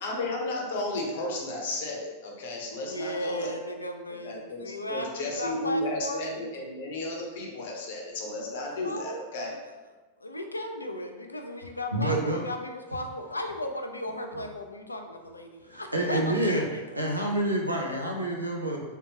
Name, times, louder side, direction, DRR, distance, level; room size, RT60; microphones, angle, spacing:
voice 1, 0.0-3.6 4.2-9.6, left 2 dB, 55° left, 0 dB, 0.7 m, -33 dB
voice 2, 2.8-6.5 8.8-9.2 10.2-16.8, left 1 dB, 80° left, 4 dB, 0.3 m, -36 dB
voice 3, 11.9-12.4 15.6-16.6 17.0-18.8, right 1 dB, 85° right, -1 dB, 0.5 m, -28 dB
3.3 x 2.8 x 2.8 m, 1.2 s
figure-of-eight pair, 90°, 0 cm